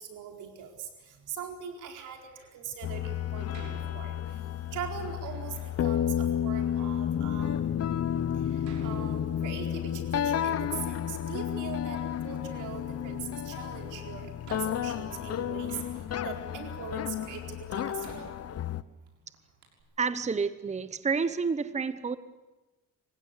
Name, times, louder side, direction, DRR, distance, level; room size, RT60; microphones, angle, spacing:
voice 1, 0.0-4.2 4.7-7.9 8.4-12.0 12.2-15.8 16.2-18.3, right 7 dB, 90° right, 3 dB, 4.4 m, -41 dB
Door, 2.1-2.6 3.5-4.5 5.2-5.8 6.6-6.7 7.4-7.5 8.6-9.8 10.1-11.2 11.5-12.3 13.7-13.8 14.4-16.4 17.1-17.2 18.0-19.1 19.3-19.4 19.6-19.8, right 3 dB, 70° right, 6.5 m, -52 dB
sound 1, 2.8-18.8, left 9 dB, 55° left, 1.0 m, -32 dB
voice 2, 20.0-22.2, right 5 dB, 25° right, 13 dB, 1.0 m, -29 dB
26.5 x 16.0 x 9.7 m, 1.1 s
cardioid pair, 90°, 30 cm